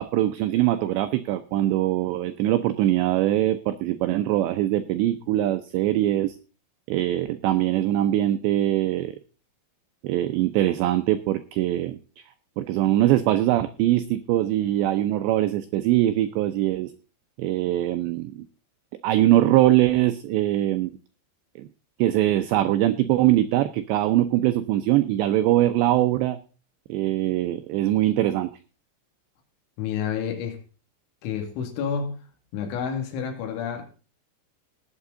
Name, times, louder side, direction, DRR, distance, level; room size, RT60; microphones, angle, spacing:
voice 1, 0.0-6.4 6.9-9.2 10.0-12.0 12.6-16.9 17.4-18.4 19.0-20.9 21.6-21.7 22.0-26.4 26.9-28.5, right 14 dB, 85° right, 2.5 m, -22 dB
voice 2, 29.8-30.6 31.2-32.2 32.5-33.8, left 7 dB, 70° left, 4.4 m, -29 dB
19.5 x 8.2 x 3.8 m
omnidirectional pair, 5.9 m